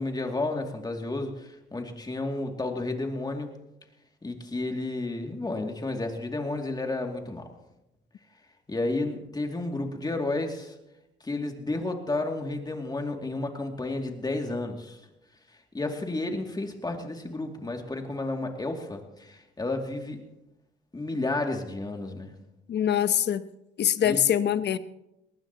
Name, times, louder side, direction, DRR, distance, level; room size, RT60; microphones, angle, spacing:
voice 1, 0.0-3.5 4.2-7.5 8.7-10.7 11.2-15.0 15.7-20.2 20.9-22.3 24.0-24.2, left 2 dB, 20° left, 3 dB, 2.6 m, -31 dB
voice 2, 22.7-23.5 23.8-24.8, left 9 dB, 60° left, 13 dB, 0.9 m, -24 dB
20.5 x 19.0 x 3.0 m, 0.91 s
cardioid pair, 90°, 20 cm